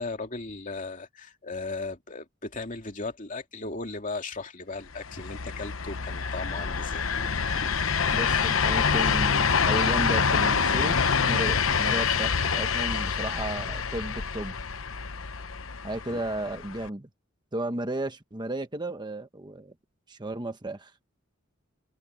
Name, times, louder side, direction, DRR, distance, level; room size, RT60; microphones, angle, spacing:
voice 1, 0.0-7.8 16.1-16.2, left 3 dB, 40° left, 2.6 m, -37 dB
sound 1, 4.9-16.9, left 6 dB, 85° left, 1.0 m, -26 dB
voice 2, 8.1-14.5 15.8-17.1 17.5-19.7 20.1-20.9, right 1 dB, 20° right, 1.2 m, -34 dB
open air
head